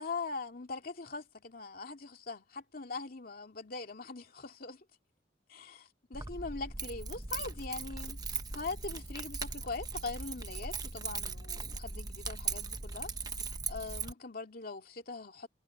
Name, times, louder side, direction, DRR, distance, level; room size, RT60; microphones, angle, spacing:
voice 1, 0.0-4.8 5.5-8.2 8.5-13.1 13.7-15.5, left 3 dB, 55° left, 2.4 m, -41 dB
Keys jangling, 6.1-14.1, right 4 dB, 20° right, 1.0 m, -39 dB
head